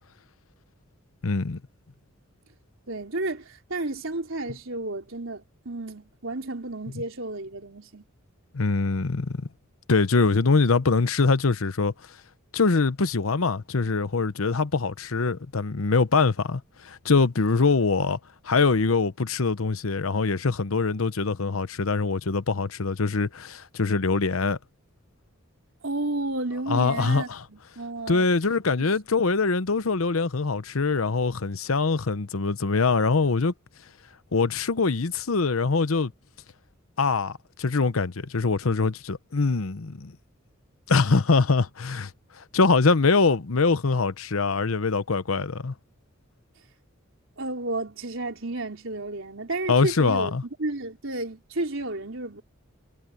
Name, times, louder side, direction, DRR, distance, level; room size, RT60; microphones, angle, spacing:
voice 1, 1.2-1.6 8.5-9.4 9.9-11.9 12.5-18.2 18.4-24.6 26.7-27.4 28.1-33.5 34.3-36.1 37.0-40.1 40.9-42.1 42.4-45.7 49.7-50.4, left 4 dB, 85° left, 0.9 m, -23 dB
voice 2, 2.9-8.0 25.8-28.3 28.8-29.2 47.4-50.3 50.6-52.4, right 2 dB, 70° right, 4.1 m, -32 dB
head